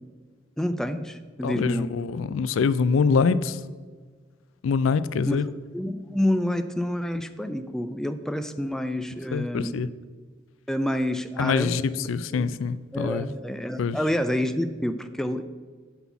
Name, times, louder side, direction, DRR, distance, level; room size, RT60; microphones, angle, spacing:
voice 1, 0.6-1.9 5.3-5.4 5.7-9.8 10.7-12.5 12.9-15.4, left 1 dB, 5° left, 9 dB, 0.3 m, -28 dB
voice 2, 1.4-3.6 4.6-5.5 9.3-9.9 11.4-13.3 13.8-14.0, left 5 dB, 90° left, 16 dB, 0.4 m, -24 dB
6.0 x 5.5 x 7.0 m, 1.5 s
head